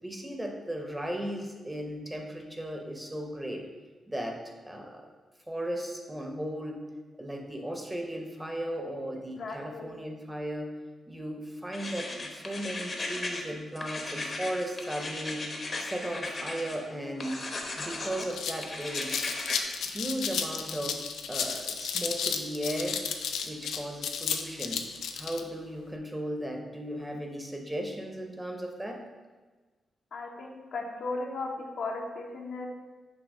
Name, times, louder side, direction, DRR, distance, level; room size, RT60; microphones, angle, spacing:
voice 1, 0.0-3.6 4.1-4.4 4.6-5.1 5.5-6.9 7.2-10.7 11.1-15.5 15.8-17.4 17.8-19.2 19.8-23.0 23.4-24.8 25.1-29.0, right 1 dB, 10° right, 2 dB, 0.8 m, -36 dB
voice 2, 9.4-9.9 30.1-32.7, left 3 dB, 70° left, 0 dB, 0.9 m, -36 dB
sound 1, 11.7-13.5 13.8-16.8 17.2-18.3 18.6-19.6, left 2 dB, 40° left, 0.9 m, -36 dB
sound 2, 17.6-17.7 18.0-25.4, left 6 dB, 90° left, 0.4 m, -33 dB
6.3 x 2.8 x 5.3 m, 1.3 s
cardioid pair, 80°, 0 cm